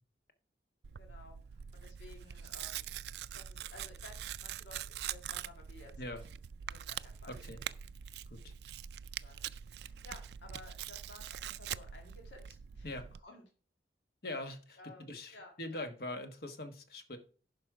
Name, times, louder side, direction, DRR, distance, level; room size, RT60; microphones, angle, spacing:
Tearing, 0.8-13.2, right 10 dB, 70° right, 0.3 m, -44 dB
voice 1, 1.0-1.4 1.7-2.9 3.3-6.3 6.7-7.4 9.0-9.5 9.8-13.4 14.8-15.9, left 2 dB, 90° left, 2 dB, 2.0 m, -55 dB
voice 2, 7.3-7.6 8.3-8.4 12.8-13.0 14.2-17.2, left 1 dB, 60° left, 7 dB, 1.4 m, -42 dB
11.0 x 5.1 x 4.7 m, 0.38 s
head